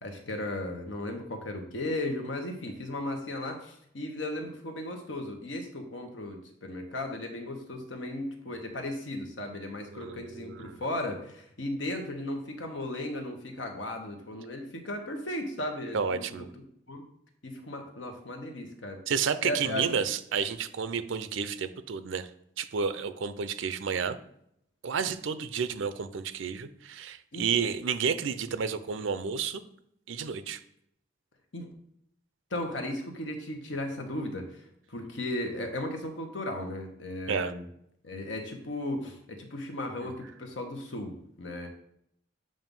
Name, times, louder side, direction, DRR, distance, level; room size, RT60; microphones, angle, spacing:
voice 1, 0.0-16.5 16.9-17.0 17.4-19.0 19.4-19.8 27.3-27.5 31.5-31.7 32.5-37.7 38.0-41.7, left 1 dB, 80° left, 4 dB, 1.1 m, -36 dB
voice 2, 9.9-10.8 15.9-16.5 19.1-22.3 22.6-24.2 24.8-29.6 30.1-30.6 37.3-37.5 40.0-40.1, right 6 dB, 85° right, 12 dB, 0.5 m, -31 dB
7.4 x 2.6 x 5.3 m, 0.73 s
head